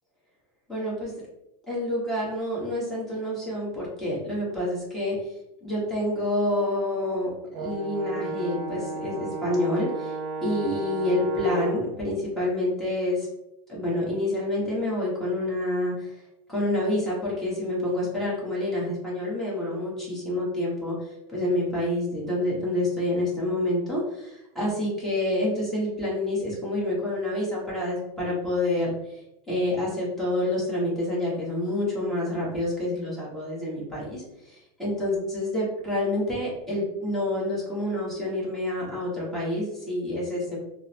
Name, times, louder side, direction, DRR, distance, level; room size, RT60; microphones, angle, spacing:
voice 1, 0.7-1.1 1.7-5.3 5.6-7.3 7.6-10.1 10.4-13.3 13.7-16.1 16.5-29.2 29.5-40.6, left 1 dB, ahead, -7 dB, 1.1 m, -28 dB
Brass instrument, 7.5-11.9, right 3 dB, 70° right, 0.7 m, -34 dB
3.5 x 2.1 x 2.8 m, 0.87 s
supercardioid pair, 155°, 18 cm